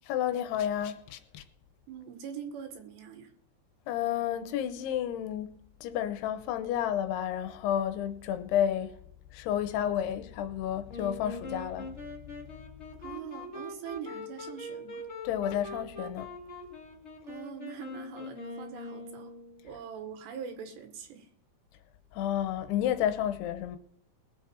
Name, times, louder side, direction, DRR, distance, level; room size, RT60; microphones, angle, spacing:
voice 1, 0.1-1.4 3.9-9.0 9.3-12.0 15.2-16.3 22.1-23.8, left 10 dB, 80° left, 2.8 m, -31 dB
voice 2, 1.9-3.3 13.0-15.1 17.2-19.3 19.6-21.3, right 7 dB, 85° right, 3.8 m, -43 dB
Wind instrument woodwind instrument, 10.9-19.6, left 2 dB, 35° left, 1.0 m, -42 dB
21.0 x 7.4 x 4.5 m
omnidirectional pair, 4.8 m